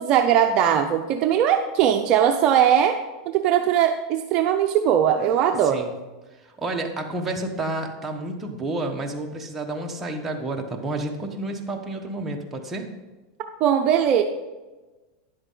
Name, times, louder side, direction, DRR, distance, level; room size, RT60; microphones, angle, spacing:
voice 1, 0.0-3.0 3.3-5.8 13.6-14.2, right 9 dB, 45° right, 5 dB, 0.6 m, -20 dB
voice 2, 5.6-6.0 6.4-12.9, right 2 dB, 15° right, 1 dB, 1.3 m, -30 dB
10.5 x 7.8 x 3.9 m, 1.2 s
supercardioid pair, 130°, 2 cm